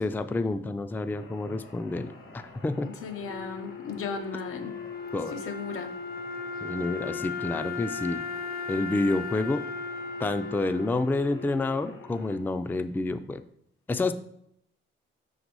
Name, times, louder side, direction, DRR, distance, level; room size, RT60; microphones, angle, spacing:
voice 1, 0.0-2.9 5.1-5.4 6.6-8.2 8.7-9.7 10.2-13.4 13.9-14.1, left 2 dB, 10° left, 11 dB, 0.3 m, -29 dB
sound 1, 1.1-12.4, left 2 dB, 70° left, 1.6 m, -49 dB
voice 2, 2.8-4.7 5.3-5.9, left 5 dB, 85° left, 6 dB, 0.9 m, -36 dB
Wind instrument woodwind instrument, 3.2-12.3, left 4 dB, 45° left, 0.6 m, -37 dB
5.9 x 3.9 x 4.7 m, 0.74 s
cardioid pair, 95°, 21 cm